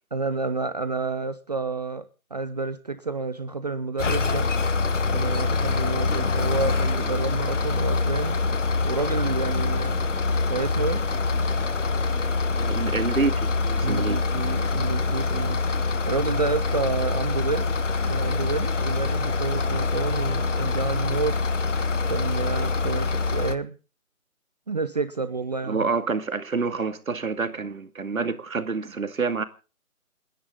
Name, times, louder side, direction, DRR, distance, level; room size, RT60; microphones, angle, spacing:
voice 1, 0.1-2.0 2.3-4.5 5.1-8.4 8.8-10.0 10.5-11.0 13.8-15.6 16.1-17.7 18.1-21.3 22.1-23.7 24.7-25.9, right 4 dB, 30° right, 0.7 m, -29 dB
sound 1, 4.0-23.6, left 3 dB, 55° left, 1.3 m, -25 dB
sound 2, 5.6-14.6, right 3 dB, 5° right, 2.1 m, -47 dB
voice 2, 12.6-14.2 25.7-29.4, right 4 dB, 70° right, 2.4 m, -27 dB
29.0 x 10.0 x 3.8 m
figure-of-eight pair, 155°, 43 cm